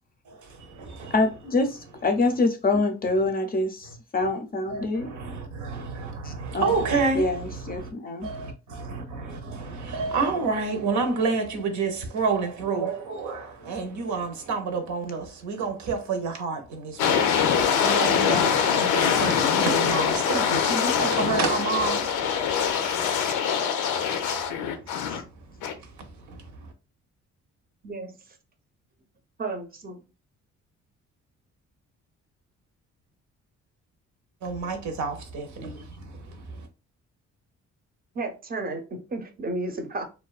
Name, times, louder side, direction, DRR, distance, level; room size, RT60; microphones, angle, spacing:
voice 1, 0.3-1.1 3.9-4.0 4.7-7.9 8.2-23.4 23.9-24.8 25.6-26.7 34.4-36.7, right 4 dB, 70° right, 0.7 m, -30 dB
voice 2, 1.1-5.1 6.2-6.7 7.1-8.3 25.1-25.2, left 2 dB, 30° left, 0.5 m, -25 dB
sound 1, 17.0-25.2 25.6-25.7, left 7 dB, 90° left, 0.5 m, -23 dB
voice 3, 27.8-28.1 29.4-30.0 35.6-35.8 38.1-40.0, right 2 dB, 30° right, 0.6 m, -33 dB
2.4 x 2.2 x 2.3 m
cardioid pair, 90°, 30 cm